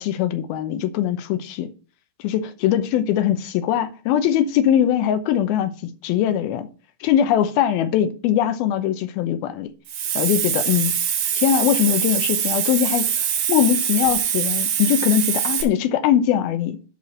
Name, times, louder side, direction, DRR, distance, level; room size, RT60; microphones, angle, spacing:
voice 1, 0.0-1.7 2.2-6.7 7.0-9.7 10.2-10.9 11.4-13.1 13.5-16.8, left 10 dB, 85° left, 2.6 m, -21 dB
Hiss, 9.9-15.6, right 8 dB, 75° right, 3.1 m, -23 dB
10.5 x 4.3 x 6.2 m
omnidirectional pair, 4.3 m